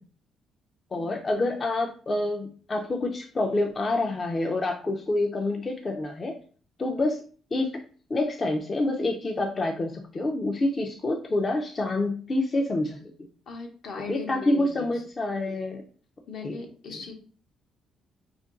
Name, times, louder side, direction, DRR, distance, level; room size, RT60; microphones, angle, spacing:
voice 1, 0.9-6.4 6.8-7.2 7.5-7.7 8.1-13.1 14.1-15.8 16.4-16.6, left 2 dB, 35° left, 2 dB, 0.4 m, -27 dB
voice 2, 13.5-14.9 16.3-17.1, left 4 dB, 70° left, 2 dB, 0.7 m, -38 dB
2.5 x 2.2 x 3.6 m, 0.41 s
cardioid pair, 90°, 0 cm